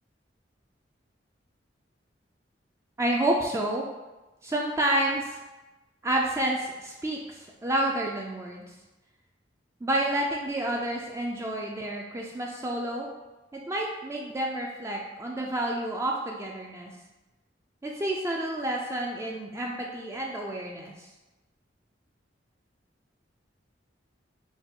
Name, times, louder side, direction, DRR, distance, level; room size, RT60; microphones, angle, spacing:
voice 1, 3.0-3.9 4.4-5.4 6.0-8.7 9.8-13.1 13.5-16.9 17.8-20.9, right 1 dB, 15° right, -1 dB, 0.3 m, -29 dB
4.9 x 2.3 x 3.6 m, 1.1 s
head